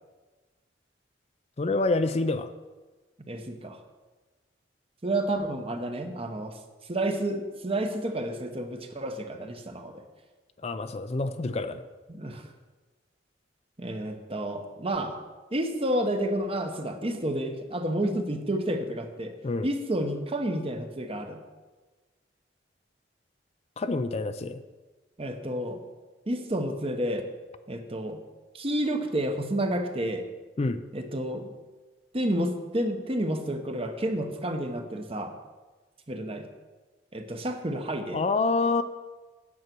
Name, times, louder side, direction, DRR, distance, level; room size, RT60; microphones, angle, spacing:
voice 1, 1.6-2.5 10.6-11.8 19.4-19.7 23.8-24.6 30.6-30.8 38.1-38.8, left 3 dB, 35° left, 10 dB, 0.4 m, -27 dB
voice 2, 3.3-3.8 5.0-6.5 6.9-10.0 12.1-12.4 13.8-15.2 15.5-19.3 19.6-21.4 25.2-25.8 26.3-27.3 27.7-28.2 28.5-30.2 30.9-31.5 32.1-35.3 36.1-36.5 37.1-38.2, right 1 dB, 35° right, 6 dB, 1.0 m, -30 dB
9.5 x 7.9 x 6.1 m, 1.3 s
head